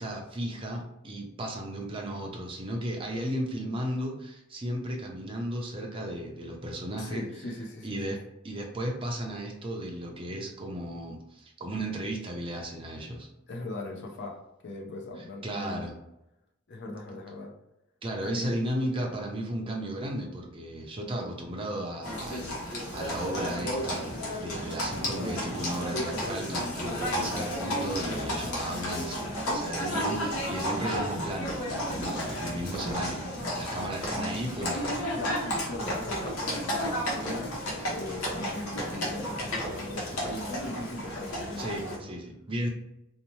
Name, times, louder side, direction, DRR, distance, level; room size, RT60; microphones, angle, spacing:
voice 1, 0.0-7.2 7.8-8.2 8.4-13.3 15.4-15.9 18.0-34.8 41.6-42.7, right 1 dB, 25° right, 0 dB, 0.5 m, -35 dB
voice 2, 7.0-8.2 13.5-15.9 16.7-17.5 18.2-18.5 35.1-42.1, left 2 dB, 55° left, 0 dB, 0.5 m, -40 dB
Livestock farm animals working animals, 22.0-42.0, equal, 85° left, 0.9 m, -32 dB
Fireworks, 26.8-41.1, right 1 dB, 20° left, 0.8 m, -45 dB
2.7 x 2.1 x 3.0 m, 0.88 s
head